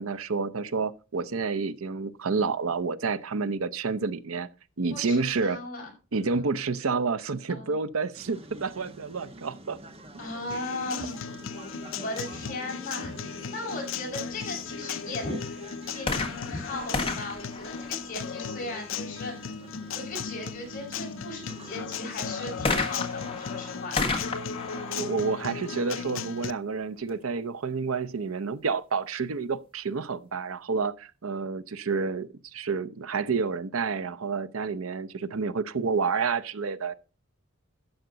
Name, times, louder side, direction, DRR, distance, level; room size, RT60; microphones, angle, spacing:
voice 1, 0.0-4.5 4.8-5.6 6.1-9.8 24.7-36.9, right 4 dB, 85° right, 0.7 m, -29 dB
voice 2, 4.9-5.9 7.5-7.7 10.2-11.2 11.5-15.6 15.9-19.5 19.9-24.0, left 2 dB, 40° left, 5.2 m, -37 dB
sound 1, 8.1-23.9, right 1 dB, 30° right, 1.2 m, -48 dB
Acoustic guitar, 10.5-26.5, left 6 dB, 65° left, 0.6 m, -36 dB
sound 2, 16.0-18.6 22.6-26.3 27.1-27.2, left 3 dB, 25° left, 1.6 m, -33 dB
12.5 x 7.9 x 3.9 m
head